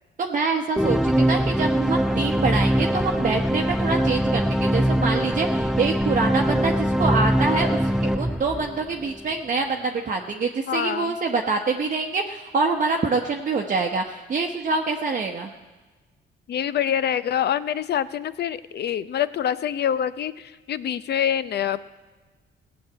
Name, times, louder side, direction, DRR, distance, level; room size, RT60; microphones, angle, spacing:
voice 1, 0.2-15.5, right 4 dB, 40° right, 2 dB, 0.9 m, -25 dB
sound 1, 0.8-9.2, equal, ahead, 0.3 m, -22 dB
voice 2, 10.7-11.2 16.5-21.8, left 9 dB, 55° left, 16 dB, 0.6 m, -25 dB
16.5 x 7.3 x 8.5 m, 1.3 s
cardioid pair, 90°, 20 cm